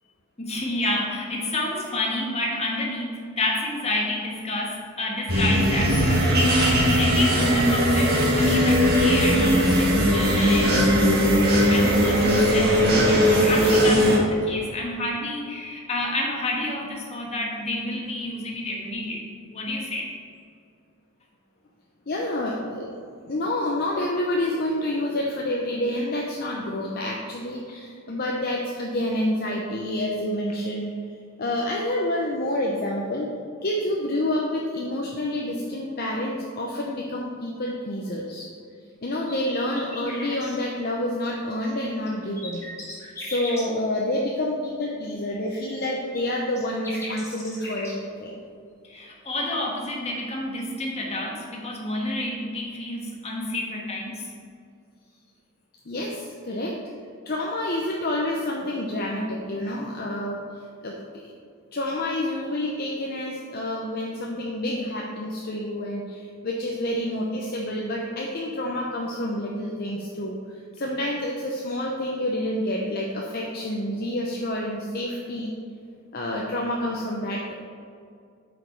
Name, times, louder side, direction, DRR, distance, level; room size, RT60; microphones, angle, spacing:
voice 1, 0.4-19.2 19.5-20.1 48.8-54.3, left 1 dB, 30° left, -1 dB, 1.3 m, -30 dB
sound 1, 5.3-14.2, equal, 45° right, 1.4 m, -19 dB
voice 2, 22.1-23.0 23.3-30.9 31.4-33.3 33.6-38.5 39.0-42.6 43.2-48.4 55.9-56.8 57.3-60.4 60.8-61.0 61.3-61.4 61.7-70.4 70.7-75.5 76.1-77.5, left 1 dB, 45° left, -2 dB, 0.7 m, -28 dB
sound 2, 39.0-40.6 41.9-43.6 45.2-47.9 50.6-50.7, left 1 dB, 15° left, 1.6 m, -39 dB
8.1 x 5.1 x 4.5 m, 2.3 s
head